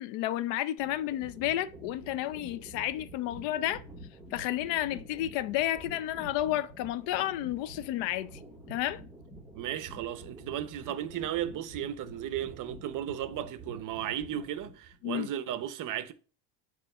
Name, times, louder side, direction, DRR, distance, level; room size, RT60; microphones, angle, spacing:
voice 1, 0.0-3.8 4.3-8.3 8.7-9.0 15.0-15.3, left 13 dB, 65° left, 0.6 m, -31 dB
sound 1, 0.8-15.0, right 1 dB, ahead, 1.6 m, -48 dB
voice 2, 9.5-16.1, right 11 dB, 45° right, 0.7 m, -35 dB
6.8 x 3.1 x 5.4 m
supercardioid pair, 115°, 46 cm